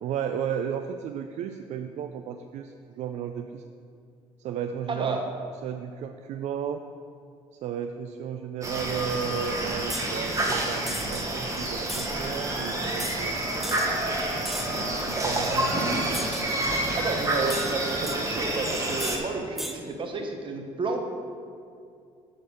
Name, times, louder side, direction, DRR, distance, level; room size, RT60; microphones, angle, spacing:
voice 1, 0.0-3.6 4.4-5.2 5.6-6.8 7.6-13.8 14.7-16.1, right 8 dB, 65° right, 7 dB, 0.4 m, -34 dB
voice 2, 4.9-5.2 16.9-21.0, right 3 dB, 40° right, 4 dB, 1.1 m, -31 dB
sound 1, 8.6-19.2, right 1 dB, 25° right, 1.4 m, -28 dB
sound 2, 9.9-10.1 10.9-11.2 11.9-12.1 13.0-13.2 13.6-13.9 14.4-14.8 16.1-16.5 17.5-18.2 19.0-19.2 19.6-19.8, equal, ahead, 0.8 m, -35 dB
8.3 x 3.9 x 6.6 m, 2.4 s
supercardioid pair, 80°, 13 cm